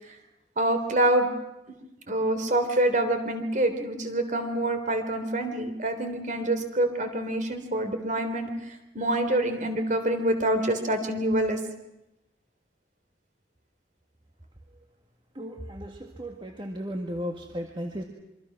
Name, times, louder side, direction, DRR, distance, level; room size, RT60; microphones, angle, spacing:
voice 1, 0.6-1.3 2.1-11.6, right 1 dB, 45° right, 7 dB, 3.5 m, -26 dB
voice 2, 15.3-18.0, equal, 30° right, 2 dB, 1.9 m, -35 dB
26.5 x 24.5 x 6.1 m, 0.92 s
head